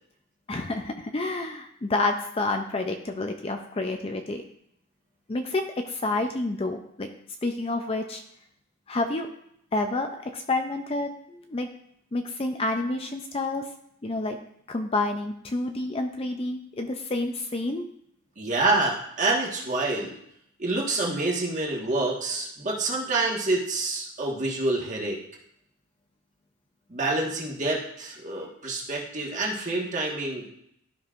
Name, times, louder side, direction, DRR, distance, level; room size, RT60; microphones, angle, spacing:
voice 1, 0.5-4.4 5.3-7.1 7.4-8.2 8.9-9.3 9.7-11.7 12.1-13.6 14.0-14.4 14.7-17.8, left 2 dB, 25° left, 5 dB, 0.4 m, -29 dB
voice 2, 18.4-20.1 20.6-25.2 26.9-30.5, right 2 dB, 35° right, -2 dB, 1.4 m, -27 dB
12.5 x 5.3 x 2.5 m, 0.73 s
head